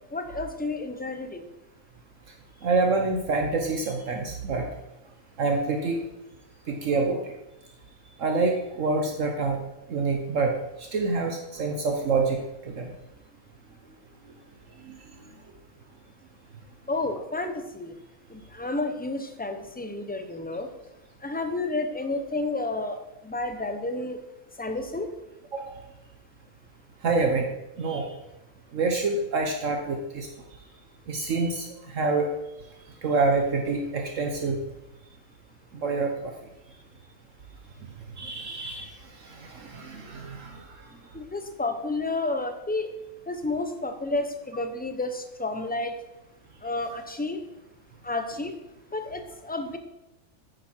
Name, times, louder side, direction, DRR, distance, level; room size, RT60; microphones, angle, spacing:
voice 1, 0.1-1.5 16.9-17.9 18.3-20.7 21.2-23.0 23.2-24.2 24.6-25.1 41.1-42.9 43.3-45.9 46.6-47.4 48.0-48.5 48.9-49.8, left 2 dB, 10° left, 6 dB, 0.6 m, -31 dB
voice 2, 2.6-4.6 5.4-6.0 6.7-7.3 8.2-9.6 9.9-10.5 10.8-12.9 14.9-15.0 25.5-25.7 27.0-27.5 27.8-28.1 28.7-30.3 31.1-32.3 33.0-34.6 35.7-36.1 38.2-38.9 39.2-40.6, right 3 dB, 65° right, 3 dB, 1.3 m, -26 dB
9.5 x 9.3 x 4.5 m, 0.92 s
omnidirectional pair, 1.5 m